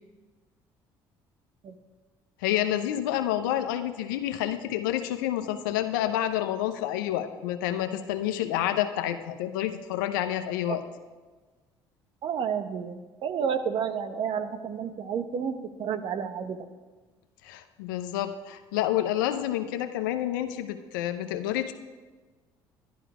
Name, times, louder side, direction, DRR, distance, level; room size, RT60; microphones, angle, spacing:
voice 1, 2.4-10.8 17.4-21.7, left 12 dB, 90° left, 8 dB, 0.8 m, -29 dB
voice 2, 12.2-16.6, right 7 dB, 60° right, 9 dB, 1.0 m, -30 dB
11.5 x 11.0 x 4.9 m, 1.3 s
supercardioid pair, 70°, 10 cm